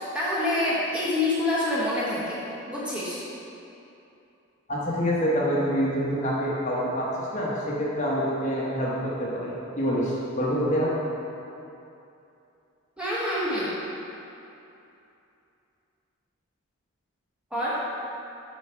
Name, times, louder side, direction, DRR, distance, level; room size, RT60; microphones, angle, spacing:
voice 1, 0.0-2.4 2.7-3.2 13.0-13.7 17.5-17.8, left 1 dB, 5° right, -9 dB, 1.1 m, -26 dB
voice 2, 4.7-10.9, equal, 35° left, -6 dB, 1.0 m, -26 dB
6.4 x 4.8 x 4.5 m, 2.8 s
head